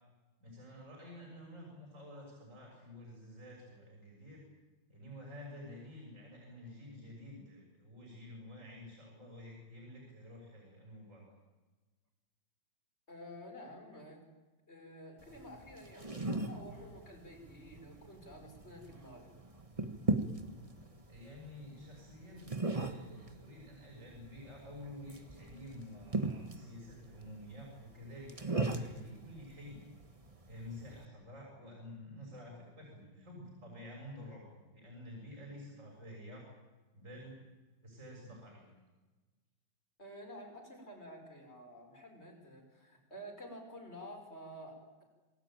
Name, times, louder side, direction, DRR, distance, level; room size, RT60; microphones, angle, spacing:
voice 1, 0.4-4.4 4.9-11.3 21.1-29.8 30.4-36.5 36.9-37.4 37.8-38.7, left 1 dB, 40° right, -1 dB, 7.1 m, -50 dB
voice 2, 13.1-14.2 14.7-19.3 40.0-45.0, equal, 30° left, 3 dB, 5.7 m, -50 dB
sound 1, 15.2-31.1, right 2 dB, 20° right, 1.5 m, -40 dB
27.0 x 18.5 x 9.1 m, 1.2 s
omnidirectional pair, 2.1 m